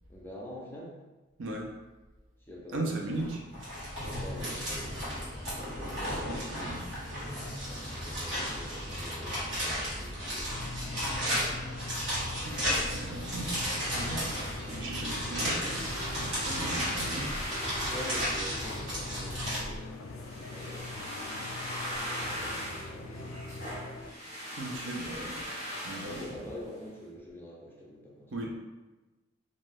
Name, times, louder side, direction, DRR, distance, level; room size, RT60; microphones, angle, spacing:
voice 1, 0.1-1.0 2.5-3.2 4.2-5.5 7.6-11.7 14.0-14.9 17.8-21.0 22.1-23.4 24.6-25.4 25.9-28.4, equal, 10° left, -5 dB, 0.5 m, -46 dB
voice 2, 1.4-1.7 2.7-3.4 6.0-6.9 12.4-14.4 14.7-17.7 24.6-25.4 25.8-26.3 28.3-28.5, right 2 dB, 70° right, 0 dB, 0.5 m, -38 dB
sound 1, 3.1-19.6, equal, 90° right, 1.3 m, -34 dB
sound 2, 10.5-24.1, left 2 dB, 75° left, 0.3 m, -43 dB
sound 3, 13.9-26.9, equal, 35° right, 0.8 m, -40 dB
2.5 x 2.2 x 3.3 m, 1.1 s
head